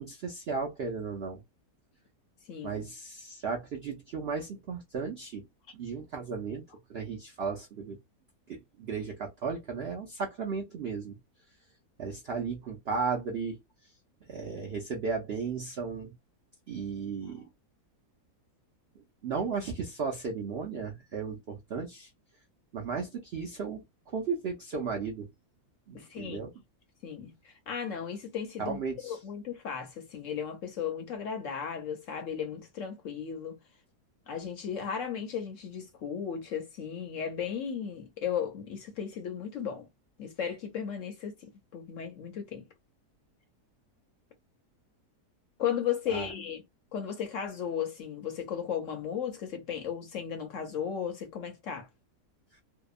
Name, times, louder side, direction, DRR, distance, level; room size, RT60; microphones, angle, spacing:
voice 1, 0.0-1.4 2.6-5.4 5.7-6.6 6.9-8.0 8.5-11.2 12.0-13.6 14.3-16.1 16.7-17.4 19.2-22.1 22.7-25.3 25.9-26.5 28.6-29.2 46.1-46.3, right 5 dB, 70° right, 0.6 m, -35 dB
voice 2, 2.5-2.8 17.2-17.3 25.9-26.4 27.0-33.6 34.3-39.9 40.2-42.6 45.6-46.6 46.9-51.9, left 8 dB, 65° left, 0.8 m, -35 dB
2.8 x 2.1 x 2.3 m
omnidirectional pair, 1.7 m